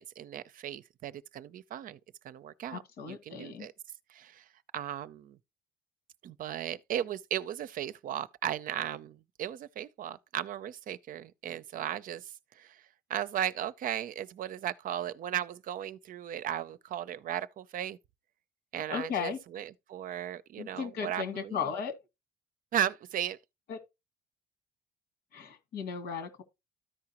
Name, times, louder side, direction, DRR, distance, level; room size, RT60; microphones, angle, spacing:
voice 1, 0.0-2.0 2.2-3.7 4.1-4.4 4.7-5.4 6.2-12.8 13.1-18.0 18.7-21.7 22.7-23.4, right 10 dB, 55° right, 0.6 m, -36 dB
voice 2, 2.7-3.7 18.9-19.4 20.6-21.9 23.7-23.8 25.3-26.4, left 6 dB, 75° left, 1.9 m, -36 dB
13.5 x 4.8 x 2.9 m
cardioid pair, 110°, 17 cm